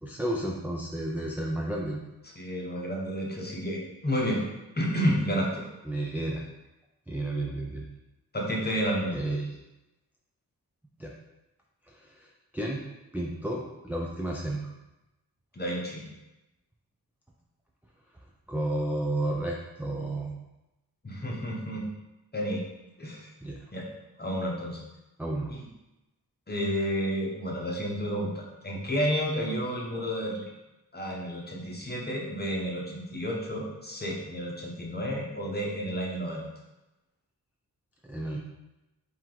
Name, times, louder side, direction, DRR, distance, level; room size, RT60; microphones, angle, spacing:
voice 1, 0.0-2.0 5.9-6.4 7.1-7.9 9.1-9.6 11.0-11.1 11.9-12.3 12.5-12.8 13.1-14.6 18.5-20.3 23.4-23.6 25.2-25.5 38.1-38.4, right 1 dB, 5° right, -3 dB, 0.4 m, -32 dB
voice 2, 2.4-4.4 4.8-5.6 8.3-9.2 15.5-16.0 21.0-21.9 22.3-22.6 23.0-23.3 23.7-23.8 24.2-24.8 25.5-25.7 26.5-30.4 30.9-36.5, equal, 25° left, -2 dB, 0.9 m, -31 dB
4.4 x 3.0 x 3.8 m, 0.99 s
wide cardioid pair, 125°, 37 cm